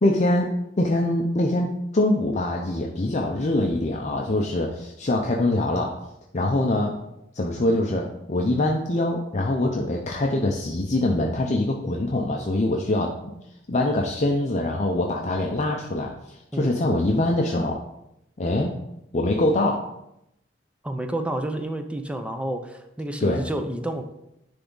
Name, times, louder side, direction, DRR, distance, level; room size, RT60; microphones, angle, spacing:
voice 1, 0.0-0.5 0.8-6.0 6.3-7.0 7.3-13.2 13.7-17.8 18.4-18.7 19.1-19.8 23.2-23.4, left 1 dB, 40° left, 1 dB, 0.6 m, -24 dB
voice 2, 20.8-24.0, right 1 dB, 5° right, 6 dB, 0.6 m, -30 dB
10.0 x 3.5 x 3.9 m, 0.83 s
head